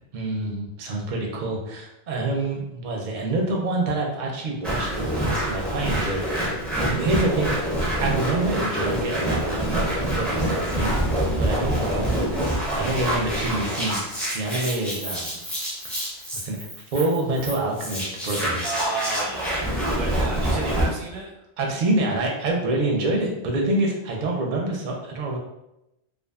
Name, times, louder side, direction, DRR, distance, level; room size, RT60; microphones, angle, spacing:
voice 1, 0.1-6.6 7.0-7.6 8.0-14.1 14.3-15.4 16.3-18.6 21.6-25.4, right 2 dB, 55° right, -1 dB, 0.6 m, -27 dB
sound 1, 4.6-20.9, right 1 dB, ahead, 0.4 m, -26 dB
voice 2, 18.6-21.3, right 3 dB, 90° right, -3 dB, 1.0 m, -32 dB
2.5 x 2.4 x 2.3 m, 0.88 s
omnidirectional pair, 1.1 m